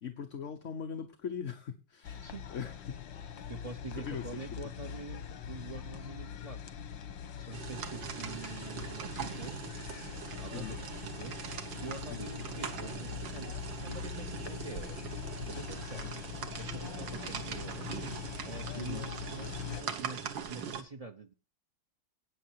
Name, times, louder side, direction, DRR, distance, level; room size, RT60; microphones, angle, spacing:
voice 1, 0.0-3.3 4.0-4.2 10.5-10.8 12.1-12.3 18.7-19.1, left 7 dB, 50° left, 6 dB, 1.1 m, -41 dB
sound 1, 2.0-19.8, left 8 dB, 90° left, 1.8 m, -43 dB
voice 2, 3.5-6.6 7.4-9.7 10.4-11.4 11.8-13.5 13.8-15.0 15.4-16.1 16.6-18.0 18.4-21.3, right 3 dB, 50° right, 9 dB, 0.4 m, -45 dB
sound 2, 7.5-20.8, right 7 dB, 85° right, 2.0 m, -42 dB
18.0 x 6.6 x 4.6 m, 0.34 s
omnidirectional pair, 2.0 m